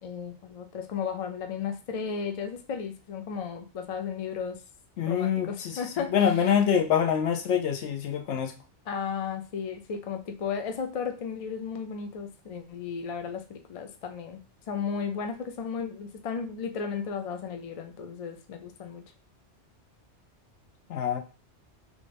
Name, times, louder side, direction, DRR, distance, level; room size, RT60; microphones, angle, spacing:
voice 1, 0.0-4.6 5.0-6.3 8.9-14.4 14.7-19.0, left 6 dB, 60° left, 5 dB, 0.4 m, -34 dB
voice 2, 5.0-8.5 20.9-21.2, left 8 dB, 75° left, 4 dB, 0.9 m, -25 dB
3.6 x 2.5 x 3.3 m, 0.33 s
omnidirectional pair, 1.2 m